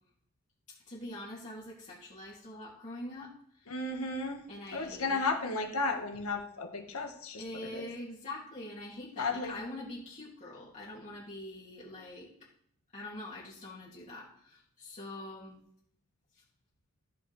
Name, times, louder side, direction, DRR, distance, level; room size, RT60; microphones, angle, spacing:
voice 1, 0.9-3.3 3.7-3.8 4.5-5.2 7.4-12.3 12.9-15.6, left 1 dB, 35° left, -7 dB, 2.4 m, -44 dB
voice 2, 3.7-4.4 4.7-7.4 7.7-7.9 9.2-9.6, left 3 dB, 80° left, 3 dB, 1.7 m, -33 dB
14.0 x 7.6 x 3.4 m, 0.68 s
head